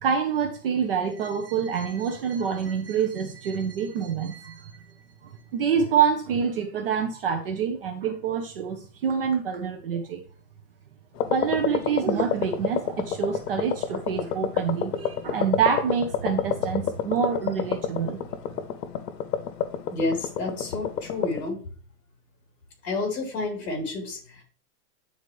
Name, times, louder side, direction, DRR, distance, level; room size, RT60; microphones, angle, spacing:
voice 1, 0.0-4.8 5.2-10.2 11.3-18.2, right 7 dB, 35° right, 5 dB, 0.7 m, -26 dB
sound 1, 11.2-21.5, left 8 dB, 85° left, 0.8 m, -29 dB
voice 2, 19.9-21.6 22.8-24.4, left 3 dB, 40° left, 1 dB, 3.2 m, -30 dB
9.3 x 4.0 x 3.1 m, 0.41 s
supercardioid pair, 170°, 47 cm